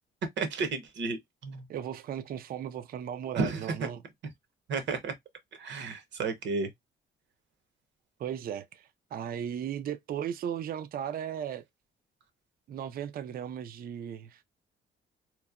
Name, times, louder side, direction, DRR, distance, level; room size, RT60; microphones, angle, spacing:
voice 1, 0.4-1.7 3.3-3.8 4.7-5.1 5.6-6.7, right 4 dB, 65° right, 0.8 m, -32 dB
voice 2, 1.7-4.0 8.2-11.6 12.7-14.4, right 9 dB, 50° right, 0.4 m, -36 dB
2.9 x 2.1 x 2.3 m
cardioid pair, 90°, 20 cm